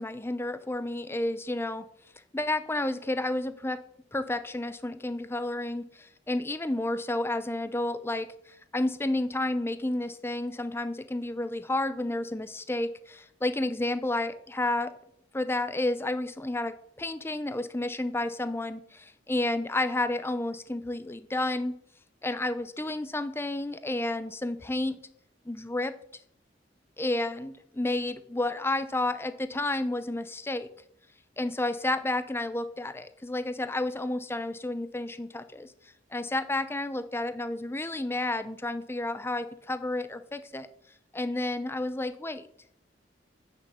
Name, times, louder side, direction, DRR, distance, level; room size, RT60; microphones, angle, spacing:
voice 1, 0.0-1.8 2.3-3.8 4.1-8.3 8.7-14.9 15.3-21.8 22.2-25.0 25.5-25.9 27.0-30.7 31.4-35.7 36.1-40.7 41.1-42.5, left 2 dB, 15° left, 12 dB, 0.6 m, -31 dB
9.1 x 6.9 x 6.8 m, 0.69 s
head